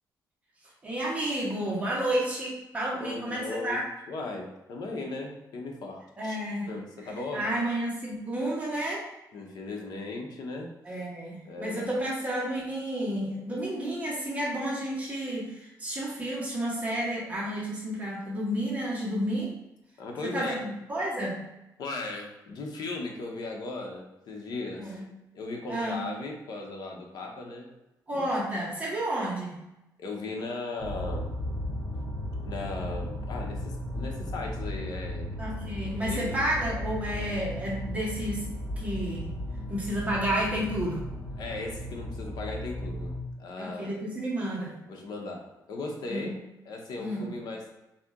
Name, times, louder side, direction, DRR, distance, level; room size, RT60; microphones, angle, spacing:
voice 1, 0.8-3.8 6.2-6.7 7.0-9.1 10.8-19.5 20.2-21.4 24.7-25.1 25.7-26.1 28.1-29.6 35.4-38.4 38.8-39.3 39.7-41.0 43.6-44.7 46.1-46.4 47.0-47.4, right 1 dB, 20° right, -6 dB, 1.3 m, -31 dB
voice 2, 3.0-3.8 4.1-6.4 6.7-7.5 9.3-11.1 11.4-11.9 20.0-20.7 21.8-25.0 25.3-27.7 28.1-28.2 30.0-31.3 32.4-35.4 36.1-36.4 41.4-43.9 44.8-47.7, left 3 dB, 70° left, 1 dB, 0.9 m, -37 dB
sound 1, 30.8-43.2, left 1 dB, 45° left, 1.4 m, -35 dB
4.1 x 2.8 x 3.7 m, 0.92 s
cardioid pair, 145°, 7 cm